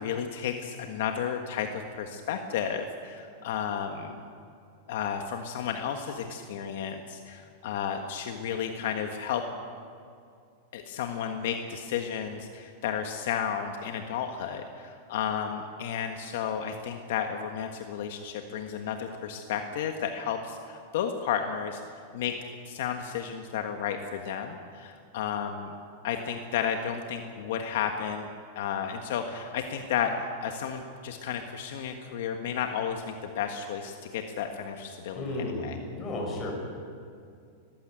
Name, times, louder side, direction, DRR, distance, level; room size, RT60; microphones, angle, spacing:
voice 1, 0.0-4.2 4.9-9.4 10.7-21.8 22.1-22.4 22.7-25.7 26.0-28.3 28.5-35.8, left 8 dB, 65° left, 5 dB, 1.5 m, -32 dB
voice 2, 35.1-36.5, left 2 dB, 20° left, 0 dB, 5.8 m, -33 dB
21.0 x 15.0 x 9.2 m, 2.4 s
supercardioid pair, 160°, 0 cm